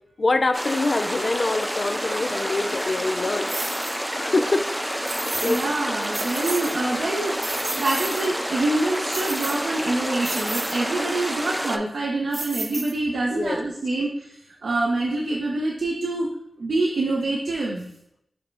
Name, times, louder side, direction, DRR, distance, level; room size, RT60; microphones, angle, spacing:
voice 1, 0.2-3.6 4.1-4.7 5.0-5.6 13.3-13.6, left 3 dB, 65° left, 9 dB, 0.4 m, -25 dB
sound 1, 0.5-11.8, equal, 5° right, 0.4 m, -29 dB
sound 2, 3.5-4.0 5.1-5.7 6.0-6.8 7.2-8.3 9.1-9.8 10.2-10.8 12.3-13.2, right 2 dB, 55° right, 0.8 m, -32 dB
voice 2, 5.4-7.4 7.8-16.3 16.6-17.9, right 2 dB, 85° right, -2 dB, 0.5 m, -26 dB
5.1 x 2.0 x 4.6 m, 0.76 s
cardioid pair, 40°, 0 cm